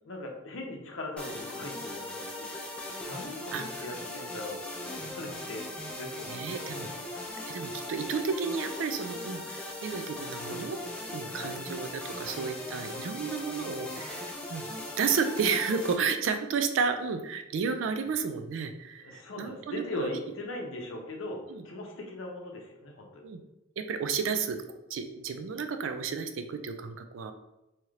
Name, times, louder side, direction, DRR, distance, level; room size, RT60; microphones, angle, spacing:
voice 1, 0.0-2.5 3.1-5.7 5.9-6.6 11.3-11.5 19.0-23.2, left 1 dB, 70° left, 1 dB, 0.7 m, -39 dB
sound 1, 1.2-15.9, left 1 dB, 5° left, 0.4 m, -39 dB
voice 2, 6.3-6.9 7.5-10.8 11.1-14.6 15.0-20.1 23.2-23.4 23.8-24.6 24.9-27.3, right 5 dB, 65° right, 8 dB, 0.3 m, -32 dB
2.8 x 2.4 x 3.1 m, 0.93 s
head